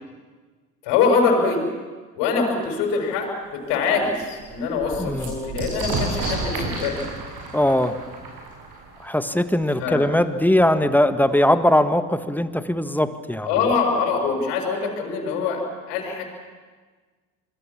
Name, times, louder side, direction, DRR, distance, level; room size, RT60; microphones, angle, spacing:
voice 1, 0.8-1.6 2.1-7.1 9.8-10.1 13.4-16.2, left 5 dB, 60° left, 2 dB, 6.5 m, -23 dB
sound 1, 3.2-3.3 3.7-3.8 4.1-9.6 10.6-10.7 10.9-11.6, right 3 dB, 50° right, 7.6 m, -32 dB
voice 2, 5.0-5.3 7.5-7.9 9.0-13.5, left 1 dB, 5° left, 11 dB, 1.5 m, -20 dB
26.5 x 23.0 x 7.3 m, 1.4 s
hypercardioid pair, 65°, 46 cm